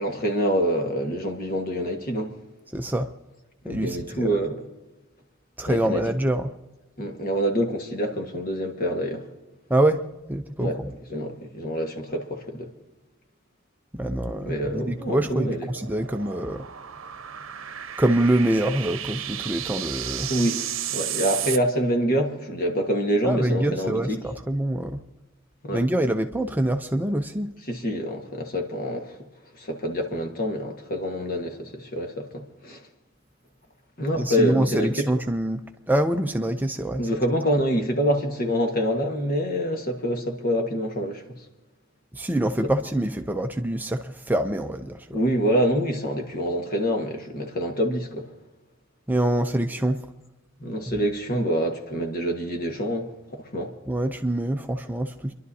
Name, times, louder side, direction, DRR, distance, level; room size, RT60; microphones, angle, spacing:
voice 1, 0.0-2.3 3.6-4.6 5.6-6.0 7.0-9.3 10.6-10.8 11.1-12.7 14.4-15.7 20.3-20.6 20.9-24.2 25.6-25.8 27.7-29.2 29.5-32.9 34.0-35.1 37.0-41.2 45.1-48.3 50.6-53.7, equal, 45° left, 1.5 m, -26 dB
voice 2, 2.7-3.1 3.6-4.4 5.6-6.5 9.7-10.0 10.3-10.7 13.9-16.7 18.0-20.3 23.2-25.0 25.7-27.5 34.1-37.1 42.1-45.2 49.1-50.0 50.9-51.0 53.9-55.3, right 1 dB, 10° right, 0.5 m, -25 dB
sound 1, 14.3-21.6, right 11 dB, 75° right, 0.8 m, -34 dB
29.5 x 11.5 x 2.8 m
head